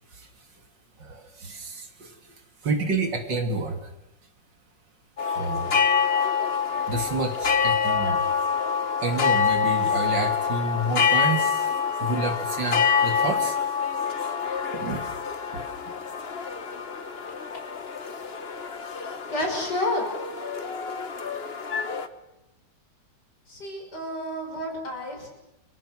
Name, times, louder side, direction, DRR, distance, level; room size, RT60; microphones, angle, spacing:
voice 1, 1.0-2.2 2.6-3.9 5.4-5.8 6.9-8.3 9.0-11.7 12.0-13.6 14.7-15.1 15.5-15.9, right 3 dB, 70° right, 5 dB, 3.0 m, -29 dB
sound 1, 5.2-22.1, left 6 dB, 35° left, 1.4 m, -26 dB
voice 2, 19.3-20.1 23.5-25.3, left 1 dB, 60° left, 2 dB, 7.0 m, -30 dB
30.0 x 24.5 x 6.2 m, 0.88 s
omnidirectional pair, 2.0 m